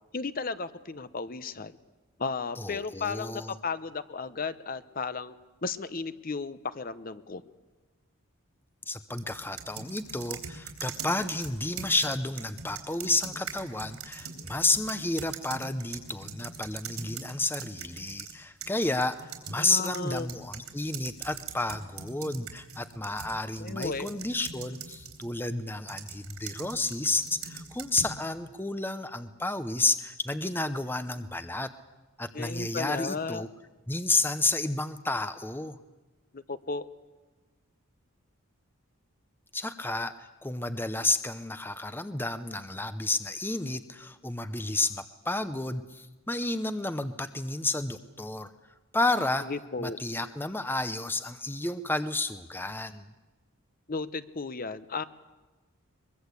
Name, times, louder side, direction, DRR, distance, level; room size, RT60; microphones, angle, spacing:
voice 1, 0.1-1.7 2.2-5.3 5.6-7.4 19.6-20.3 23.6-24.2 32.3-33.5 36.3-36.9 49.4-50.0 53.9-55.0, left 4 dB, 40° left, 13 dB, 0.8 m, -34 dB
voice 2, 2.6-3.5 8.9-31.7 32.2-33.5 33.9-35.8 39.5-48.5 48.9-49.5 49.8-53.1, left 2 dB, 10° left, 11 dB, 0.7 m, -31 dB
sound 1, 9.2-18.3 18.6-25.3 25.9-28.2, right 6 dB, 80° right, 3.8 m, -42 dB
23.0 x 22.5 x 8.3 m, 1.2 s
head